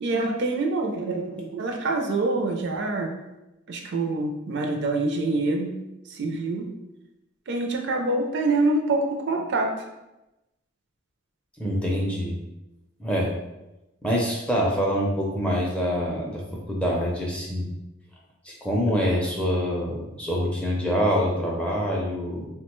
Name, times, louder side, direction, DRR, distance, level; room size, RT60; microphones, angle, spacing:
voice 1, 0.0-3.1 3.7-5.8 6.1-6.7 7.5-9.7, right 2 dB, 55° right, 2 dB, 0.4 m, -25 dB
voice 2, 11.6-12.4 13.0-13.3 14.0-16.4 16.7-17.7 18.4-22.5, equal, 5° left, -3 dB, 0.4 m, -25 dB
3.5 x 2.1 x 2.9 m, 0.98 s
head